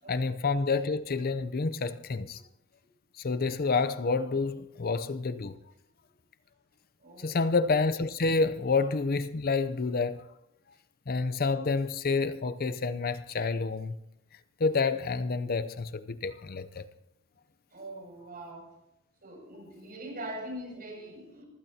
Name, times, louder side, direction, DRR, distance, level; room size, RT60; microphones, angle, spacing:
voice 1, 0.1-2.4 3.2-5.6 7.2-10.2 11.1-14.0 14.6-16.9, left 4 dB, 45° left, 0.6 m, -28 dB
voice 2, 7.0-7.3 17.7-18.7 19.2-21.5, right 1 dB, 45° right, 6.8 m, -42 dB
25.5 x 15.5 x 2.8 m
head